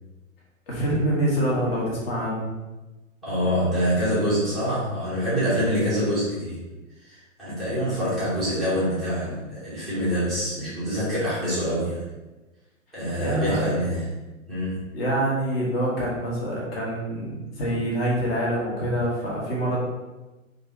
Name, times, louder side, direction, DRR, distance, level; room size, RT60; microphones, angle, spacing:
voice 1, 0.7-2.5 13.2-13.7 14.9-19.9, right 1 dB, 45° left, -4 dB, 1.2 m, -25 dB
voice 2, 3.2-6.6 7.1-12.0 12.9-14.0 14.5-14.8, equal, ahead, -13 dB, 0.4 m, -25 dB
3.0 x 2.5 x 3.1 m, 1.1 s
figure-of-eight pair, 115°, 41 cm